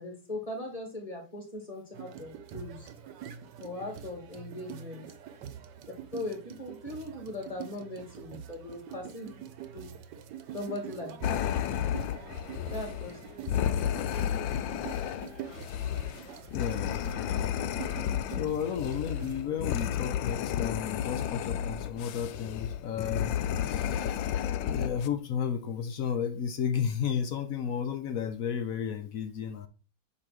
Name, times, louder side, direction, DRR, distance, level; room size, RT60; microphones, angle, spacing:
voice 1, 0.0-2.9 3.6-5.1 6.1-9.4 9.7-9.9 10.5-11.4 12.7-13.2, left 2 dB, 20° left, 2.4 m, -39 dB
sound 1, 1.9-19.4, right 8 dB, 65° right, 1.3 m, -45 dB
sound 2, 11.2-25.1, left 10 dB, 75° left, 1.3 m, -32 dB
voice 2, 16.5-17.5 18.3-23.4 23.6-24.3 24.6-29.7, left 7 dB, 60° left, 1.0 m, -33 dB
8.5 x 3.0 x 6.1 m
omnidirectional pair, 2.1 m